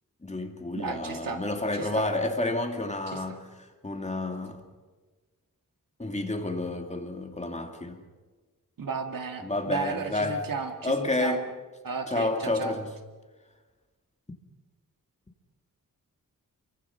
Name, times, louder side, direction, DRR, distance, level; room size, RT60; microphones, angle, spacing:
voice 1, 0.2-3.4 3.8-4.6 6.0-8.0 9.4-10.4 10.8-11.4 12.1-12.9, left 2 dB, 20° left, 2.6 m, -30 dB
voice 2, 0.7-1.5 1.7-2.1 3.1-3.2 8.8-11.4 11.8-12.7, right 5 dB, 75° right, 2.5 m, -34 dB
29.5 x 24.0 x 5.9 m
wide cardioid pair, 130°, 34 cm